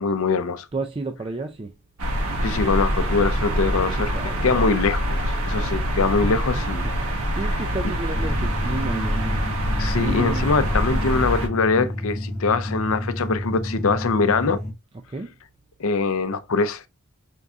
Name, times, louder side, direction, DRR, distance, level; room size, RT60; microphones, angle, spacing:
voice 1, 0.0-0.7 2.4-4.1 4.4-6.9 9.8-14.6 15.8-16.8, left 4 dB, 70° left, 0.5 m, -23 dB
voice 2, 0.7-1.7 3.7-3.9 4.1-4.5 6.2-6.5 6.8-9.4 9.9-10.5 15.1-15.3, right 2 dB, 25° right, 0.3 m, -32 dB
sound 1, 2.0-11.5, equal, 85° right, 1.2 m, -25 dB
sound 2, 8.1-14.7, left 1 dB, 30° left, 0.8 m, -30 dB
5.3 x 3.5 x 2.4 m
head